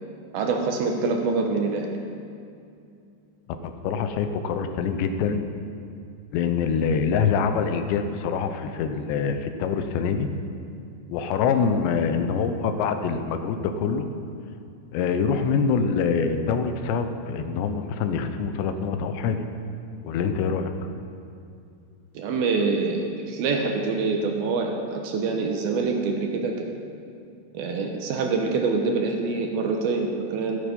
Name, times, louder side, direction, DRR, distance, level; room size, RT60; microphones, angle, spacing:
voice 1, 0.3-1.9 22.1-26.7 27.5-30.6, right 4 dB, 70° right, 3 dB, 2.6 m, -25 dB
voice 2, 3.6-5.4 6.3-10.3 11.1-14.1 14.9-19.4 20.0-20.7, left 6 dB, 90° left, 8 dB, 3.2 m, -25 dB
13.5 x 13.5 x 5.4 m, 2.5 s
omnidirectional pair, 4.9 m